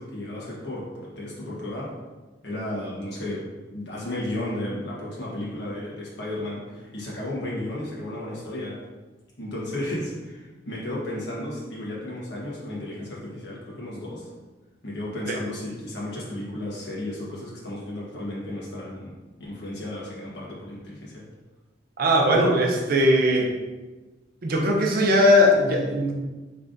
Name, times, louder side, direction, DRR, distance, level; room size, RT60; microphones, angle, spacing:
voice 1, 0.0-1.9 2.4-3.5 3.7-8.8 9.4-14.3 14.8-21.2, left 1 dB, 70° left, -5 dB, 1.2 m, -33 dB
voice 2, 22.0-23.5 24.4-26.1, left 1 dB, 55° right, 0 dB, 0.6 m, -19 dB
3.7 x 3.3 x 2.6 m, 1.2 s
head